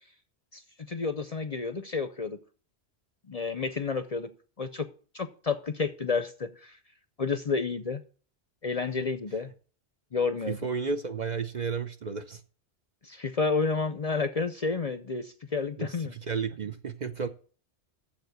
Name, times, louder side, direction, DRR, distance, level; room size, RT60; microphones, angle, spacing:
voice 1, 0.9-2.4 3.3-4.3 4.6-4.9 5.1-6.8 7.2-8.0 8.6-9.5 10.1-10.6 13.0-16.2, left 4 dB, 40° left, 0.6 m, -30 dB
voice 2, 10.5-12.4 15.8-17.3, right 5 dB, 45° right, 0.7 m, -32 dB
7.3 x 7.3 x 8.0 m
omnidirectional pair, 1.1 m